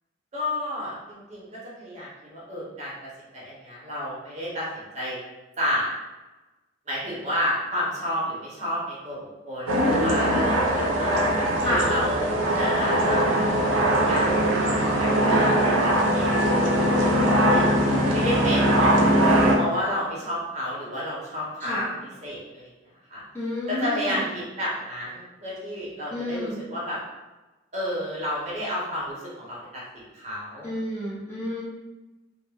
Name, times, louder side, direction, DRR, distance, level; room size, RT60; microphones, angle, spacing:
voice 1, 0.3-1.5 1.7-5.2 5.6-5.9 6.9-9.2 9.4-11.1 11.6-12.3 12.5-13.2 14.0-14.4 15.0-17.7 18.1-18.9 19.5-21.8 22.0-22.7 23.1-23.2 23.7-27.0 27.7-30.7, equal, 35° right, -6 dB, 0.8 m, -31 dB
voice 2, 9.7-10.6 11.6-11.8 15.1-15.6 17.0-17.5 17.8-18.1 21.6-21.9 23.3-24.2 26.1-26.6 30.6-31.6, left 1 dB, 10° left, -10 dB, 0.6 m, -29 dB
sound 1, 9.7-19.6, right 1 dB, 85° right, 0.5 m, -21 dB
2.3 x 2.0 x 3.2 m, 1.1 s
head